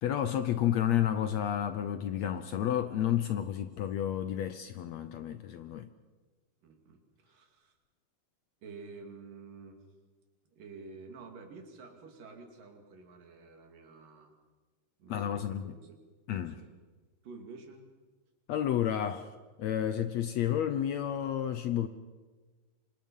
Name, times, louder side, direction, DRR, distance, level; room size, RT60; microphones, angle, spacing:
voice 1, 0.0-5.9 15.1-15.7 16.3-16.6 18.5-19.3 19.6-21.9, left 10 dB, 70° left, 1.7 m, -31 dB
voice 2, 6.6-7.7 8.6-9.8 10.5-14.3 15.0-16.0 16.5-16.8 17.2-17.9, right 4 dB, 80° right, 4.2 m, -50 dB
26.5 x 25.5 x 5.5 m
omnidirectional pair, 3.8 m